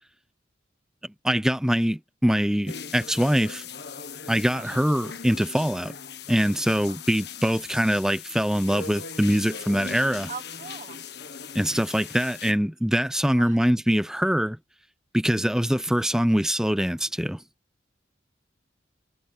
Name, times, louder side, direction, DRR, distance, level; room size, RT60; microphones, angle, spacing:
voice 1, 1.2-3.6 4.3-5.9 6.3-10.3 11.5-14.6 15.1-17.4, equal, 5° right, 0.6 m, -23 dB
sound 1, 2.7-12.5, left 6 dB, 60° left, 1.6 m, -39 dB
voice 2, 4.5-4.8 10.3-11.0 13.4-13.6, right 5 dB, 40° right, 1.4 m, -40 dB
head